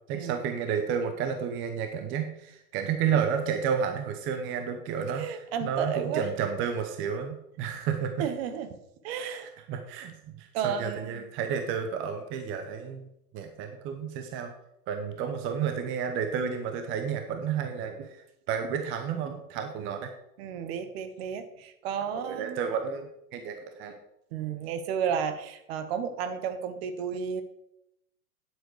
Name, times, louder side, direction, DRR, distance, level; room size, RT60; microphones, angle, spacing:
voice 1, 0.1-8.1 9.2-9.4 9.7-13.1 13.3-14.5 14.9-18.2 18.5-20.1 22.1-24.0, right 7 dB, 25° right, 6 dB, 0.9 m, -31 dB
voice 2, 5.1-6.3 8.2-8.7 9.0-9.5 10.5-11.2 20.4-22.6 24.3-27.4, right 7 dB, 40° right, 9 dB, 1.2 m, -32 dB
9.5 x 7.8 x 4.8 m, 0.82 s
figure-of-eight pair, 105°, 47 cm